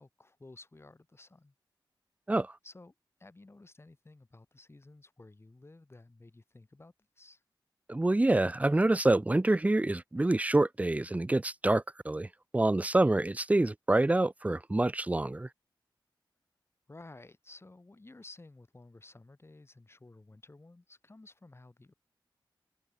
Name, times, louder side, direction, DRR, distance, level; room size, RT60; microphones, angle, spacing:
voice 1, 0.0-1.5 2.6-2.9 3.2-7.4 16.9-21.9, left 2 dB, 30° left, 7.1 m, -54 dB
voice 2, 7.9-12.3 12.5-15.5, right 2 dB, 15° right, 0.6 m, -26 dB
wide cardioid pair, 80°, 8 cm